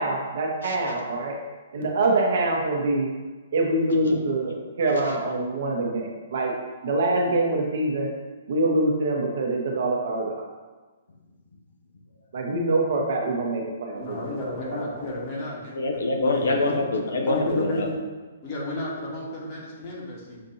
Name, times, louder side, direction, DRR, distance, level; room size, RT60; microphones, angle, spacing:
voice 1, 0.0-1.4 1.7-3.1 3.5-6.5 6.8-8.1 8.5-10.5 12.3-14.2 14.4-14.8, right 2 dB, 60° right, 0 dB, 0.9 m, -25 dB
voice 2, 13.9-15.8 16.3-16.4 17.3-17.9 18.4-20.4, left 1 dB, 40° left, -4 dB, 1.4 m, -32 dB
voice 3, 15.7-17.9, left 2 dB, 70° left, 2 dB, 0.6 m, -25 dB
6.4 x 2.6 x 2.7 m, 1.3 s
figure-of-eight pair, 125°, 0 cm